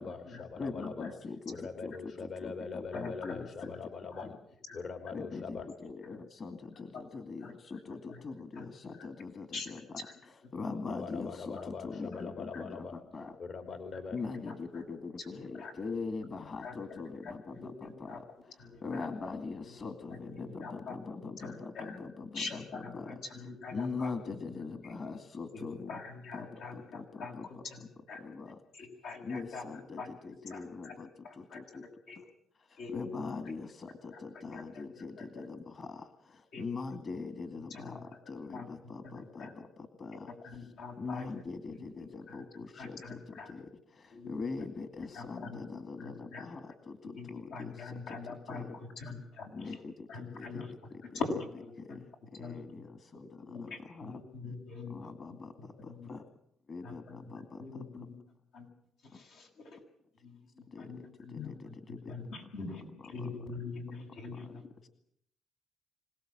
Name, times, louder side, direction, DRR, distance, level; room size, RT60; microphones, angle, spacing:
voice 1, 0.0-1.1 1.5-4.4 4.7-5.7 10.9-12.9 13.4-14.2, left 5 dB, 65° left, 6 dB, 2.6 m, -42 dB
voice 2, 0.6-3.7 5.1-13.4 14.1-25.9 26.3-27.9 28.1-28.6 29.2-31.9 32.1-32.3 32.5-48.2 48.5-48.8 49.5-51.4 51.8-54.1 54.9-56.2 56.7-58.1 60.7-62.2 63.0-63.5 64.3-64.9, left 4 dB, 45° left, 8 dB, 2.3 m, -42 dB
voice 3, 2.9-3.3 4.1-4.2 4.7-4.8 7.4-7.5 8.6-8.7 9.5-9.7 12.5-12.6 14.2-14.5 15.6-15.7 16.6-16.7 17.5-18.2 18.6-19.0 20.4-20.9 21.4-22.0 22.3-22.9 23.3-24.1 25.5-27.3 27.6-27.8 28.1-28.2 28.7-29.7 30.0-30.1 30.5-30.9 31.2-31.6 32.1-32.2 32.8-33.2 34.1-34.2 34.5-34.6 36.5-36.7 37.9-38.0 38.5-38.7 39.0-39.5 40.4-41.3 41.8-42.4 42.7-43.5 44.1-44.4 45.1-45.5 46.0-46.4 47.2-48.6 49.0-49.5 50.1-50.7 51.1-52.0 52.4-52.6 53.4-55.0 55.9-56.1 56.8-56.9 57.3-58.2 58.5-58.7 59.0-59.8 60.2-61.5 62.1-64.6, left 4 dB, 90° left, 0 dB, 7.7 m, -43 dB
26.5 x 18.5 x 9.0 m, 0.72 s
cardioid pair, 90°, 0 cm